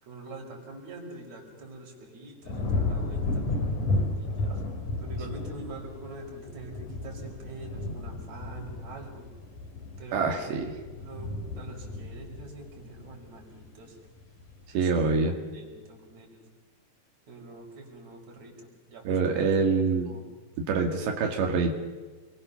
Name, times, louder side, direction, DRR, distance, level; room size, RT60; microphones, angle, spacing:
voice 1, 0.0-3.5 4.1-4.7 5.0-9.3 10.0-14.0 14.7-15.1 15.5-16.5 17.3-20.2 20.9-21.5, right 2 dB, 40° right, 0 dB, 6.3 m, -45 dB
sound 1, 2.5-13.7 14.2-14.6, left 2 dB, 50° left, 4.5 m, -33 dB
voice 2, 10.1-10.7 14.7-15.4 19.1-20.1 20.6-21.7, right 4 dB, 85° right, 2 dB, 4.5 m, -25 dB
29.0 x 22.5 x 7.0 m, 1.3 s
omnidirectional pair, 4.9 m